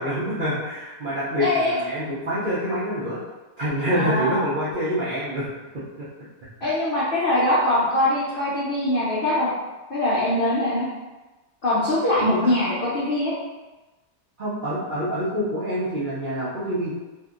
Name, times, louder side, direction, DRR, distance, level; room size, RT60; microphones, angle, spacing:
voice 1, 0.0-3.2 3.6-5.5 12.2-12.5 14.4-16.9, equal, 75° right, -10 dB, 0.4 m, -26 dB
voice 2, 1.4-1.7 3.9-4.4 6.6-9.5 9.9-10.9 11.6-13.3, left 1 dB, 80° left, -8 dB, 0.5 m, -22 dB
2.7 x 2.6 x 2.4 m, 1.1 s
omnidirectional pair, 1.8 m